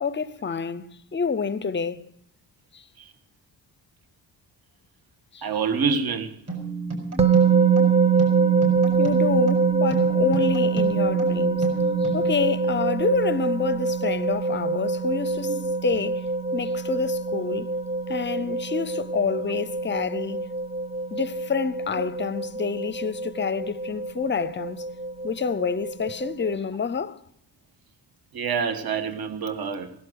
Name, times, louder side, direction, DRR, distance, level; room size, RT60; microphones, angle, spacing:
voice 1, 0.0-2.1 2.7-2.8 5.3-5.5 9.0-11.7 12.0-16.3 16.5-17.7 18.1-20.5 21.1-24.9 25.2-27.2, left 5 dB, 25° left, 0.5 m, -28 dB
voice 2, 5.4-6.3 15.5-15.6 28.3-29.9, right 5 dB, 60° right, 1.6 m, -27 dB
sound 1, 6.5-12.2, right 3 dB, 35° right, 6.3 m, -32 dB
sound 2, 7.2-26.5, right 5 dB, 15° right, 0.6 m, -24 dB
17.5 x 11.5 x 6.3 m
wide cardioid pair, 175°, 42 cm